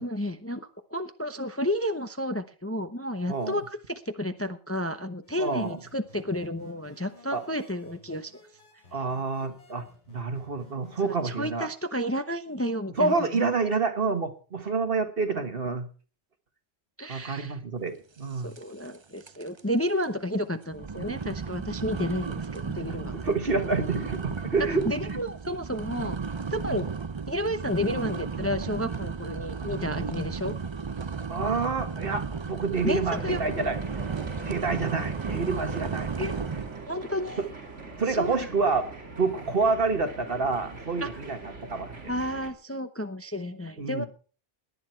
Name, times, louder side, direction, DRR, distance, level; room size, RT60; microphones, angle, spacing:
voice 1, 0.0-8.3 8.9-9.0 11.0-13.5 17.0-17.6 18.4-23.1 24.8-26.2 26.5-26.9 27.3-30.5 32.8-33.4 36.2-36.3 36.9-37.4 38.1-38.5 41.0-41.1 42.1-44.0, equal, 15° left, 9 dB, 0.8 m, -31 dB
voice 2, 3.3-3.6 5.4-5.8 7.3-7.4 8.9-11.7 13.0-15.9 17.1-18.5 22.9-24.8 26.7-26.8 31.3-33.8 34.4-36.1 38.0-38.9 39.2-41.4 41.7-42.0 43.8-44.1, right 4 dB, 55° right, 8 dB, 1.7 m, -28 dB
sound 1, 5.2-11.3, left 3 dB, 90° left, 6.0 m, -56 dB
sound 2, 18.6-19.0 19.2-19.6 20.0-20.1 20.7-36.9, right 5 dB, 30° right, 0.5 m, -34 dB
sound 3, 33.1-42.5, right 3 dB, 90° right, 3.1 m, -42 dB
18.5 x 11.0 x 4.5 m, 0.40 s
omnidirectional pair, 1.2 m